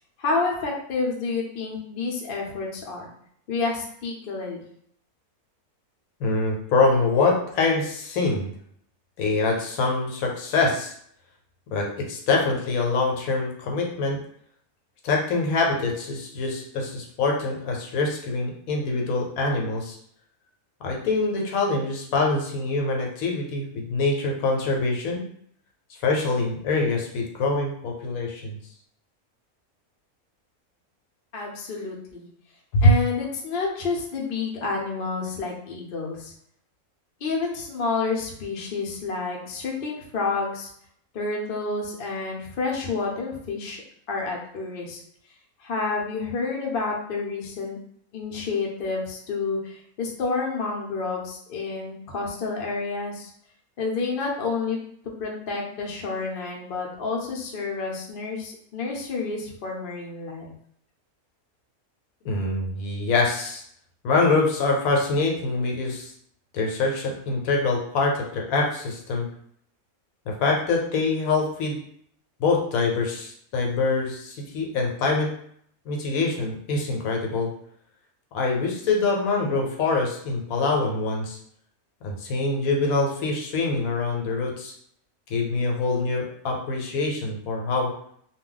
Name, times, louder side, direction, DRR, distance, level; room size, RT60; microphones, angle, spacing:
voice 1, 0.2-3.1 3.5-4.6 31.3-32.3 32.8-36.3 37.2-40.7 41.1-43.8 44.1-45.0 45.6-47.8 48.1-53.3 53.8-54.8 55.2-60.5, left 4 dB, 55° left, -1 dB, 0.6 m, -29 dB
voice 2, 6.2-8.5 9.2-10.9 11.7-14.2 15.0-20.0 20.8-25.2 26.0-28.6 32.7-32.9 62.2-63.6 64.0-66.1 66.5-69.3 70.3-71.8 72.4-75.3 75.9-77.5 78.3-81.4 82.0-84.7 85.3-87.9, left 3 dB, 75° left, 0 dB, 1.0 m, -24 dB
2.3 x 2.1 x 3.7 m, 0.66 s
omnidirectional pair, 1.5 m